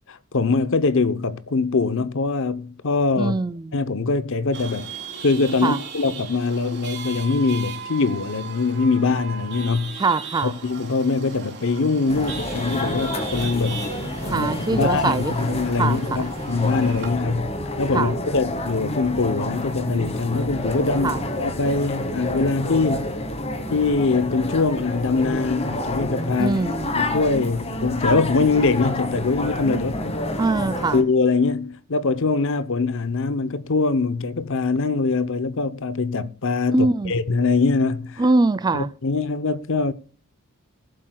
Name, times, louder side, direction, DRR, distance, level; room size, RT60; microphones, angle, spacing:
voice 1, 0.1-3.3 3.7-4.9 5.2-10.0 10.4-13.9 14.2-23.1 23.7-26.6 27.0-30.0 30.9-38.2 38.7-39.9, left 4 dB, 65° left, 0.8 m, -23 dB
voice 2, 3.2-3.7 5.6-5.8 10.0-10.5 14.2-15.3 15.8-16.0 17.9-18.1 21.0-21.2 26.4-26.9 30.4-31.0 36.7-37.1 38.2-38.9, right 3 dB, 20° right, 0.4 m, -22 dB
Chatter / Vehicle horn car horn honking / Traffic noise roadway noise, 4.5-17.1, right 5 dB, 55° right, 3.4 m, -37 dB
sound 1, 12.1-31.0, left 1 dB, 30° left, 1.4 m, -29 dB
19.5 x 7.7 x 2.3 m
head